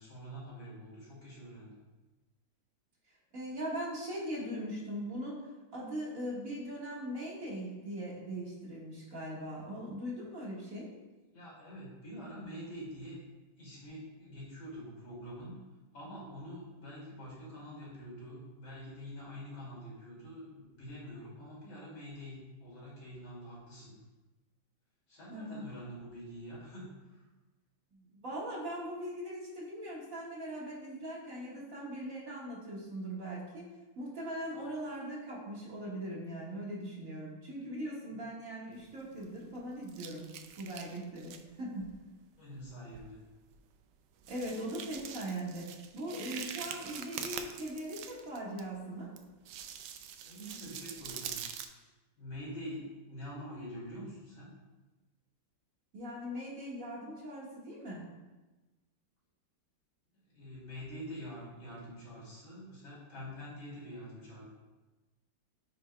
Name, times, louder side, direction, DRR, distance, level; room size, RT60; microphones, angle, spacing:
voice 1, 0.0-1.8 11.3-13.2 13.6-15.6 15.9-24.0 25.1-27.1 38.1-38.2 42.4-43.2 50.2-51.4 51.8-51.9 52.2-54.5 60.3-64.5, equal, 90° left, -6 dB, 3.4 m, -46 dB
voice 2, 3.3-5.4 5.7-10.9 25.3-25.6 27.9-33.6 34.0-40.3 40.6-41.9 44.3-49.1 55.9-58.0, right 1 dB, 45° right, -5 dB, 2.0 m, -40 dB
sound 1, 38.8-39.6 39.9-41.4 41.8-42.0 42.6-42.7 42.9-43.1 43.5-43.6 44.2-48.6 49.2-51.7, right 8 dB, 75° right, 1.2 m, -44 dB
9.1 x 6.1 x 2.3 m, 1.2 s
omnidirectional pair, 2.1 m